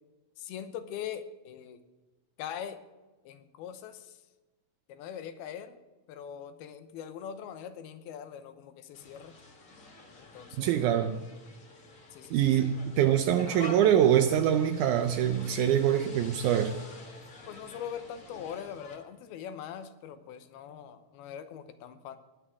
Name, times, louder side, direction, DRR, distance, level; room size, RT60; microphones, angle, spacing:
voice 1, 0.4-1.8 2.4-2.8 3.3-4.2 4.9-5.8 6.1-9.3 10.2-10.7 12.1-13.2 13.4-13.7 17.5-22.2, left 9 dB, 85° left, 11 dB, 2.9 m, -42 dB
sound 1, 8.9-19.0, left 2 dB, 40° left, 1.1 m, -47 dB
voice 2, 10.6-11.2 12.3-16.8, right 10 dB, 85° right, 8 dB, 1.7 m, -24 dB
20.0 x 15.0 x 3.7 m, 1.2 s
omnidirectional pair, 4.4 m